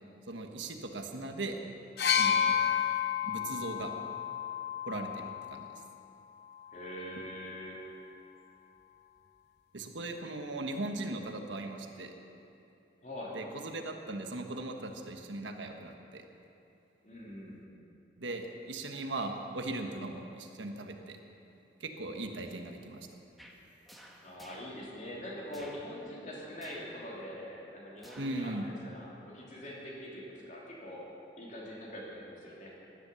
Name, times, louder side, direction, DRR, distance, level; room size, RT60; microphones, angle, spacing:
voice 1, 0.3-1.6 2.2-2.7 3.2-3.9 4.9-5.7 9.7-12.1 13.3-16.2 18.2-21.2 21.8-23.1 28.2-28.7, right 2 dB, 90° right, 4 dB, 1.4 m, -39 dB
sound 1, 2.0-5.8 6.8-7.0, left 8 dB, 60° left, 0.8 m, -31 dB
voice 2, 6.7-7.8 13.0-13.4 17.0-17.6 24.2-31.1 31.4-32.7, equal, 40° left, -4 dB, 3.2 m, -43 dB
sound 2, 23.4-23.6 23.8-24.7 25.5-25.8 26.6-26.9 28.0-28.4 28.8-28.9, equal, ahead, 1.2 m, -53 dB
16.5 x 11.5 x 7.0 m, 2.8 s
head